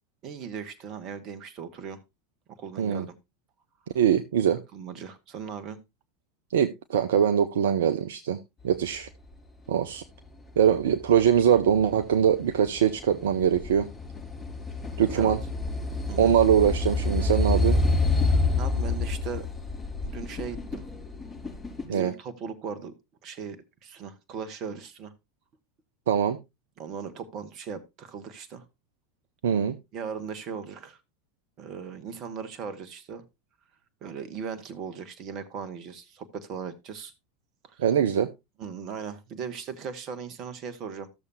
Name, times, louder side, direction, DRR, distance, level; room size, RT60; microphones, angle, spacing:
voice 1, 0.2-2.0 2.6-3.2 4.7-5.8 15.1-15.4 16.1-16.3 18.2-19.5 20.1-20.8 21.9-22.9 23.2-23.6 23.8-25.1 26.8-28.6 29.9-31.0 31.6-33.2 34.0-37.1 37.6-37.8 38.6-41.1, right 6 dB, 45° right, 1.3 m, -38 dB
voice 2, 3.9-4.6 6.5-8.4 8.6-9.1 9.7-10.0 10.6-13.9 15.0-15.4 16.2-17.8 21.9-22.1 26.1-26.4 29.4-29.7 37.8-38.3, right 8 dB, 70° right, 0.6 m, -22 dB
sound 1, 10.5-21.8, left 2 dB, 25° left, 5.2 m, -28 dB
14.0 x 6.8 x 2.6 m
figure-of-eight pair, 80°, 0 cm